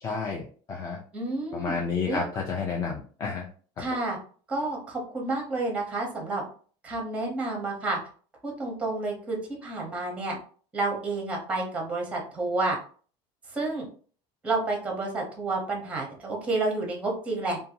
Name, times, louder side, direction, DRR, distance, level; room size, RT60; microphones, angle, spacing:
voice 1, 0.0-1.0 1.5-3.5, left 5 dB, 25° left, -1 dB, 0.3 m, -31 dB
voice 2, 1.1-1.8 2.1-2.2 3.8-4.2 4.5-6.4 6.8-8.0 8.4-10.4 10.7-12.8 13.5-13.9 14.4-17.6, right 2 dB, 10° right, 0 dB, 0.7 m, -30 dB
2.6 x 2.2 x 2.7 m, 0.43 s
cardioid pair, 165°, 13 cm